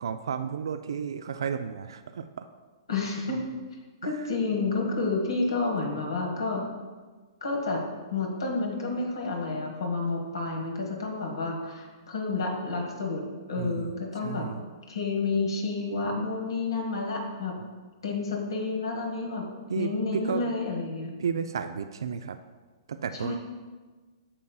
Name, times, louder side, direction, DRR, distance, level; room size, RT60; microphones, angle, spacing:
voice 1, 0.0-2.5 4.0-4.1 13.6-13.9 14.2-14.6 19.7-19.9 20.3-20.4 21.2-22.4 23.0-23.3, right 6 dB, 70° right, 9 dB, 0.3 m, -32 dB
voice 2, 2.9-3.4 4.0-6.6 7.4-13.2 13.5-14.5 14.9-17.5 18.0-19.5 19.7-21.1 23.2-23.4, left 3 dB, 75° left, 0 dB, 1.4 m, -30 dB
8.6 x 6.4 x 2.3 m, 1.4 s
hypercardioid pair, 115°, 2 cm